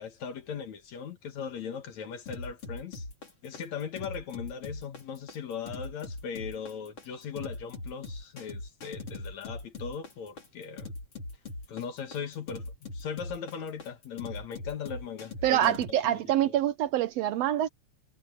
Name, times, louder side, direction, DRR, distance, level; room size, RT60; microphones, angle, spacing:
voice 1, 0.0-3.1 3.4-10.9 11.7-12.7 12.9-16.6, left 7 dB, 65° left, 2.9 m, -39 dB
sound 1, 2.3-15.9, left 2 dB, 45° left, 6.5 m, -41 dB
voice 2, 15.4-17.7, right 12 dB, 75° right, 1.6 m, -26 dB
omnidirectional pair, 3.5 m